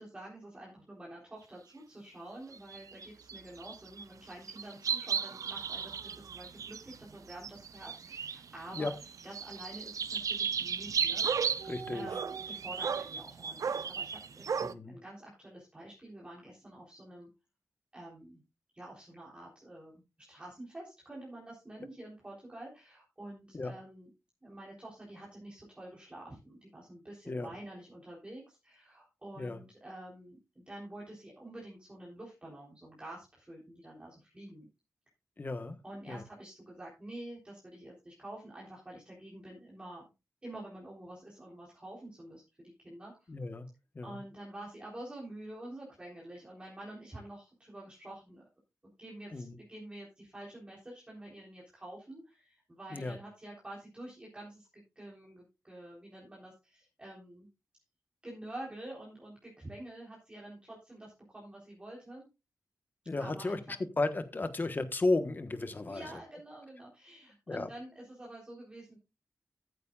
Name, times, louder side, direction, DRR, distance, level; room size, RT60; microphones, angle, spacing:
voice 1, 0.0-8.9 9.2-11.5 11.9-17.3 17.9-18.4 18.7-20.0 20.3-24.1 24.4-34.7 35.8-40.0 40.4-43.3 44.0-48.4 48.8-54.7 55.0-57.5 58.2-62.3 63.2-63.7 65.9-69.0, right 1 dB, 20° right, -4 dB, 3.9 m, -48 dB
sound 1, 2.5-4.0 4.3-8.5 8.7-14.7, right 6 dB, 70° right, 0.6 m, -35 dB
voice 2, 11.6-12.1 14.6-15.0 23.5-23.7 27.3-27.5 29.4-29.6 35.4-35.8 36.1-36.2 43.3-43.7 43.9-44.2 49.3-49.5 52.9-53.2 63.1-63.6 64.0-66.1 67.5-67.7, left 2 dB, 35° left, 10 dB, 1.3 m, -34 dB
14.5 x 9.4 x 2.5 m, 0.27 s
wide cardioid pair, 140°, 6 cm